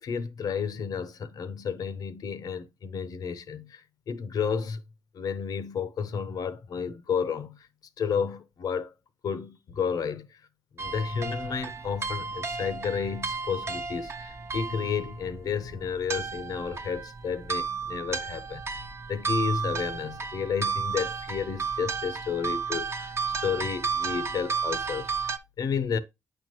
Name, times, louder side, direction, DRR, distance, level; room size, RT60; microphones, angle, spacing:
voice 1, 0.0-4.8 5.1-7.7 8.0-8.9 9.2-10.4 10.7-26.0, left 6 dB, 65° left, 0.9 m, -32 dB
sound 1, 10.8-25.4, right 5 dB, 40° right, 0.7 m, -33 dB
8.5 x 4.6 x 3.0 m
supercardioid pair, 65°, 7 cm